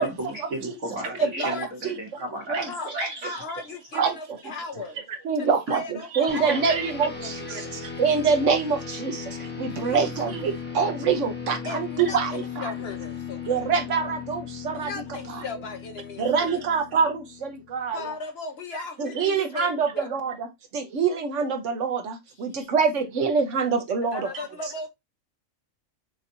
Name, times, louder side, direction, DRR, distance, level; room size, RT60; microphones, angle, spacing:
voice 1, 0.0-3.7 24.4-24.5, right 1 dB, 85° right, 2.1 m, -34 dB
voice 2, 1.0-1.9 2.7-2.9 3.4-5.0 5.4-6.8 7.0-7.9 9.7-10.1 11.6-13.5 14.7-16.6 17.9-20.1 22.5-22.6 24.0-24.9, left 3 dB, 55° left, 1.0 m, -37 dB
voice 3, 5.1-12.7 13.5-15.4 16.2-18.1 19.0-20.5 20.7-24.3, right 5 dB, 70° right, 1.2 m, -25 dB
sound 1, 6.3-18.0, left 6 dB, 10° left, 0.9 m, -37 dB
6.2 x 2.9 x 2.6 m
omnidirectional pair, 1.4 m